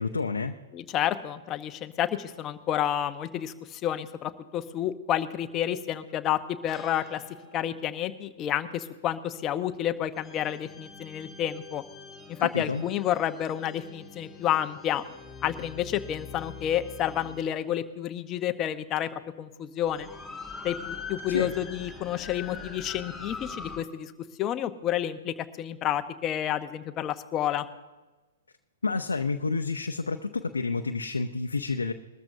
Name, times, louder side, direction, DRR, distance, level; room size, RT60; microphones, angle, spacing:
voice 1, 0.0-0.5 12.5-12.8 21.3-21.5 28.8-31.9, left 4 dB, 85° left, 4 dB, 0.7 m, -29 dB
voice 2, 0.7-7.2 7.5-11.8 12.3-15.0 15.4-19.1 19.4-20.1 20.6-24.1 24.4-27.6, left 11 dB, 30° left, 10 dB, 0.9 m, -30 dB
sound 1, 6.3-8.1 10.1-17.5 18.6-18.7 19.8-23.8, left 4 dB, 10° left, 3.3 m, -44 dB
21.5 x 13.5 x 2.7 m, 1.2 s
hypercardioid pair, 115°, 0 cm